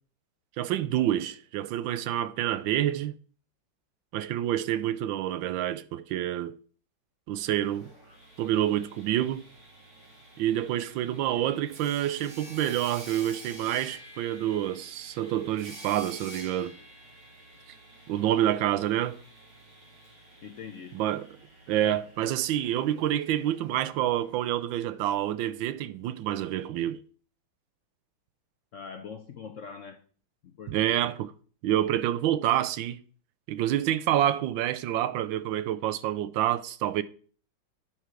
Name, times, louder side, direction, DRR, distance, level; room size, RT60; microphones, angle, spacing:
voice 1, 0.6-3.2 4.1-6.5 7.3-7.9 8.4-9.4 10.4-16.7 18.1-19.2 20.9-21.3 21.7-27.0 30.7-31.3 31.6-33.0 33.5-37.0, right 12 dB, 80° right, 1.3 m, -28 dB
Sawing, 7.3-25.1, right 1 dB, 45° right, 3.3 m, -50 dB
voice 2, 11.3-11.6 20.4-21.0 21.8-22.0 22.7-22.8 28.7-30.0 30.4-31.0, left 6 dB, 65° left, 0.7 m, -43 dB
9.2 x 4.7 x 5.8 m
omnidirectional pair, 2.1 m